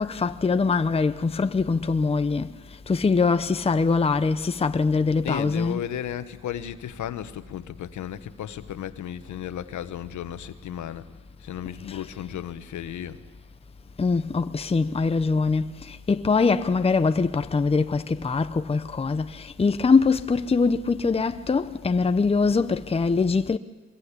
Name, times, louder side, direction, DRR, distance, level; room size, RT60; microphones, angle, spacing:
voice 1, 0.0-2.5 2.9-5.8 14.0-15.7 16.1-19.3 19.6-23.6, left 4 dB, 20° left, 0.8 m, -23 dB
voice 2, 5.2-11.1 11.4-13.2, left 10 dB, 70° left, 1.4 m, -34 dB
24.0 x 22.0 x 8.4 m
cardioid pair, 90°, 30 cm